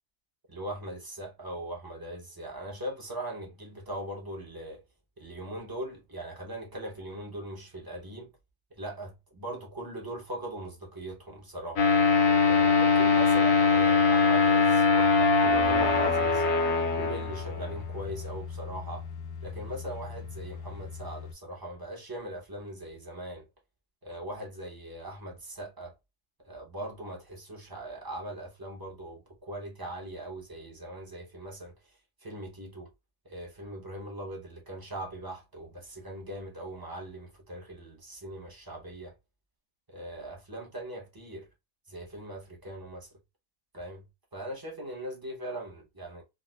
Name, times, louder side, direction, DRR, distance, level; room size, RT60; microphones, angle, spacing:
voice 1, 0.5-4.8 5.2-8.3 8.7-11.8 12.4-16.5 16.9-19.1 19.4-23.4 24.0-25.9 26.5-31.8 32.2-32.9 33.2-39.1 39.9-41.5 41.9-43.1 43.7-44.1 44.3-46.2, right 1 dB, 20° right, 0.6 m, -40 dB
sound 1, 11.8-21.3, left 4 dB, 65° left, 1.1 m, -24 dB
4.7 x 2.0 x 2.2 m
omnidirectional pair, 1.6 m